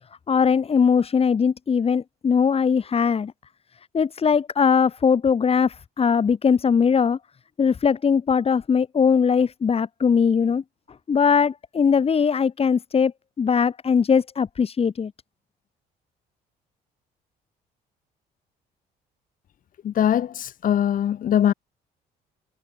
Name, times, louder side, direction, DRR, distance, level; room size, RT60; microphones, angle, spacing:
voice 1, 0.3-3.3 3.9-7.2 7.6-10.6 11.1-13.1 13.4-15.1, left 6 dB, 35° left, 7.0 m, -20 dB
voice 2, 19.8-21.5, left 10 dB, 55° left, 3.4 m, -21 dB
cardioid pair, 110°, 17 cm